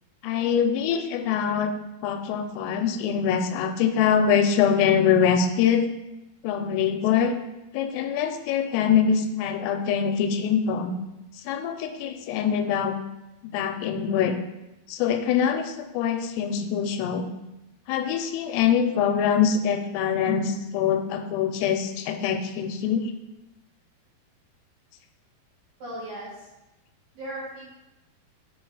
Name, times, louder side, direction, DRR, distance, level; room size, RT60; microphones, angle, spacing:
voice 1, 0.2-1.7 2.0-5.9 6.4-7.4 7.7-10.9 11.5-12.9 13.4-14.4 14.9-17.3 17.9-23.1, left 7 dB, 85° left, 6 dB, 2.6 m, -24 dB
voice 2, 25.8-26.5 27.1-27.6, right 1 dB, 55° right, -7 dB, 2.3 m, -36 dB
6.3 x 4.0 x 4.7 m, 0.96 s
omnidirectional pair, 4.7 m